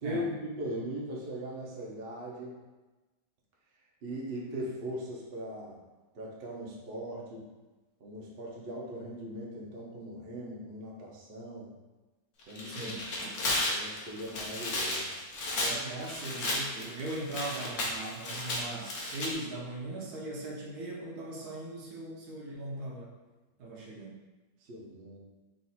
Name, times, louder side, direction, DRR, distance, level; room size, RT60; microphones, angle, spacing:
voice 1, 0.0-2.6 4.0-5.8 6.1-7.4 8.0-11.7 12.5-15.1 24.6-25.2, equal, 50° right, -4 dB, 0.7 m, -39 dB
Tearing, 12.4-19.3, left 1 dB, 55° left, 1.0 m, -34 dB
voice 2, 15.6-23.1 23.6-24.2, right 2 dB, 65° right, -3 dB, 1.2 m, -39 dB
3.9 x 2.5 x 4.1 m, 1.2 s
omnidirectional pair, 1.8 m